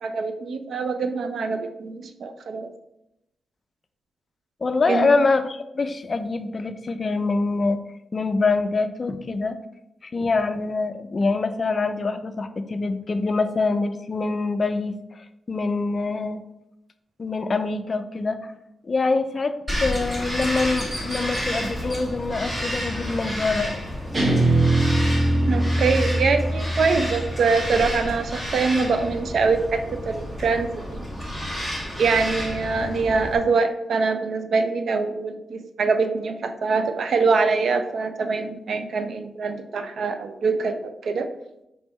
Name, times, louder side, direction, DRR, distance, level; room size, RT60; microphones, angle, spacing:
voice 1, 0.0-2.7 4.9-5.1 25.5-31.0 32.0-41.3, right 4 dB, 70° right, 8 dB, 0.4 m, -24 dB
voice 2, 4.6-7.8 8.1-9.6 10.0-16.4 17.2-18.5 18.8-19.5 19.8-23.8, left 3 dB, 40° left, 9 dB, 0.3 m, -25 dB
Bird vocalization bird call bird song, 19.7-33.4, equal, 20° right, 1.5 m, -31 dB
Guitar, 24.1-27.4, right 1 dB, 45° right, 1.4 m, -22 dB
4.9 x 3.4 x 3.1 m, 0.86 s
cardioid pair, 100°, 0 cm